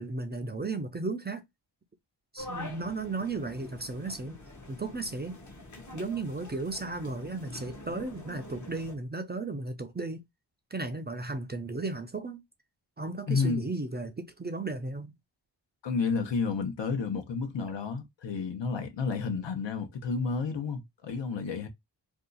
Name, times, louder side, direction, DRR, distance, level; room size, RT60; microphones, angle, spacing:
voice 1, 0.0-1.4 2.3-4.4 4.7-5.3 5.9-10.2 10.7-12.4 13.0-15.1, right 3 dB, 25° right, 0.4 m, -35 dB
sound 1, 2.4-9.0, left 1 dB, 40° left, 0.9 m, -45 dB
voice 2, 13.3-13.7 15.8-21.7, left 5 dB, 75° left, 0.9 m, -31 dB
2.7 x 2.3 x 3.8 m
wide cardioid pair, 110°, 44 cm